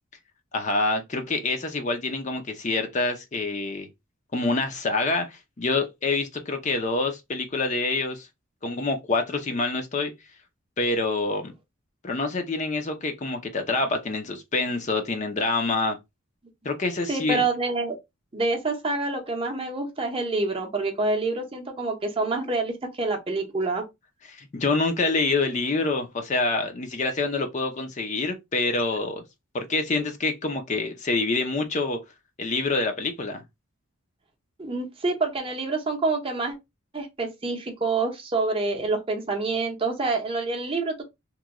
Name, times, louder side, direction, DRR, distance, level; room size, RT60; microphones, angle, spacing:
voice 1, 0.5-3.9 4.3-8.3 8.6-10.1 10.8-11.5 12.0-16.0 16.6-17.4 24.3-29.2 29.5-32.0 32.4-33.4, left 3 dB, 35° left, 0.5 m, -26 dB
voice 2, 17.1-18.0 18.3-23.8 34.6-36.5 36.9-41.0, right 3 dB, 25° right, 0.6 m, -27 dB
3.0 x 2.2 x 3.5 m
head